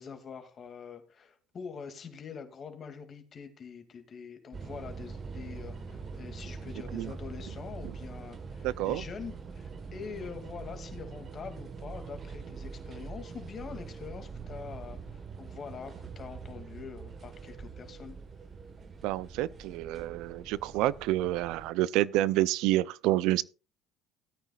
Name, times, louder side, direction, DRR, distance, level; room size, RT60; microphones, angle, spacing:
voice 1, 0.0-18.2, left 6 dB, 45° left, 2.3 m, -44 dB
sound 1, 4.5-21.7, right 5 dB, 40° right, 1.3 m, -43 dB
voice 2, 8.6-9.0 19.0-23.4, right 15 dB, 75° right, 0.4 m, -28 dB
17.5 x 9.1 x 2.4 m
supercardioid pair, 75°, 0 cm